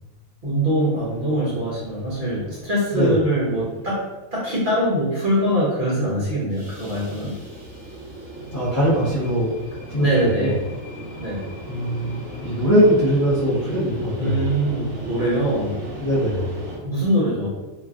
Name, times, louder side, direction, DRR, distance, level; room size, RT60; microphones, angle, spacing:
voice 1, 0.4-4.0 4.3-7.3 10.0-10.6 11.2-11.5 14.2-15.8 16.8-17.5, right 1 dB, 40° right, -8 dB, 1.1 m, -22 dB
sound 1, 0.9-4.0 6.4-16.8, right 1 dB, 65° right, 1.6 m, -37 dB
voice 2, 8.5-9.5 9.9-10.1 10.4-10.5 11.7-14.5 16.0-16.5, equal, 20° left, -10 dB, 0.4 m, -21 dB
3.2 x 2.2 x 2.4 m, 1.1 s
omnidirectional pair, 1.4 m